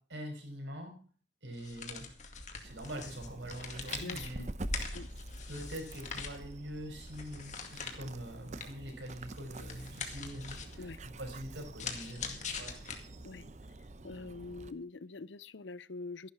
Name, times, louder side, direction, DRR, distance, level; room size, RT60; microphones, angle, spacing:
voice 1, 0.1-1.0 1.4-4.5 5.5-12.7, equal, 85° right, 5.9 m, -44 dB
sound 1, 1.5-13.4, left 4 dB, 40° left, 2.2 m, -43 dB
Dog, 2.6-14.7, right 2 dB, 40° right, 0.8 m, -48 dB
voice 2, 4.0-4.5 4.9-5.1 10.8-11.0 13.2-13.5 14.0-16.3, left 3 dB, 85° left, 0.6 m, -44 dB
14.0 x 11.5 x 5.9 m
head